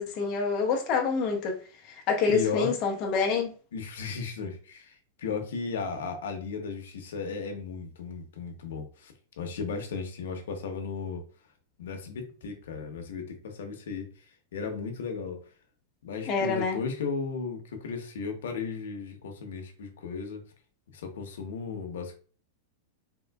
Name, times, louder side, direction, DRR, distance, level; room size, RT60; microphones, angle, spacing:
voice 1, 0.0-1.6 1.9-3.5 16.3-16.8, left 5 dB, 35° left, 0.7 m, -27 dB
voice 2, 2.3-2.7 3.7-11.2 11.8-14.1 14.5-15.4 16.0-20.4 20.9-22.1, left 5 dB, 90° left, 0.7 m, -35 dB
3.6 x 2.5 x 2.2 m
supercardioid pair, 160°, 0 cm